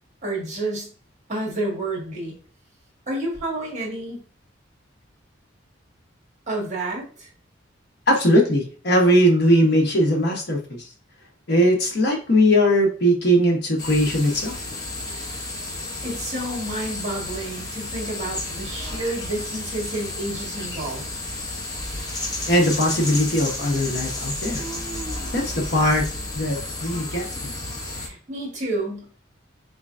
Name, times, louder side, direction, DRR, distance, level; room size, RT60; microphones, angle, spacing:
voice 1, 0.2-0.9 1.3-2.4 3.1-4.2 6.5-7.3 15.0-15.4 16.0-21.0 27.9-29.1, right 1 dB, 40° right, -3 dB, 1.6 m, -30 dB
voice 2, 8.1-10.8 11.5-14.6 22.5-24.6 25.3-26.1 26.3-27.5, equal, 55° left, 1 dB, 1.0 m, -20 dB
sound 1, 13.8-28.1, left 2 dB, 20° left, 0.8 m, -32 dB
3.8 x 3.2 x 2.5 m, 0.41 s
head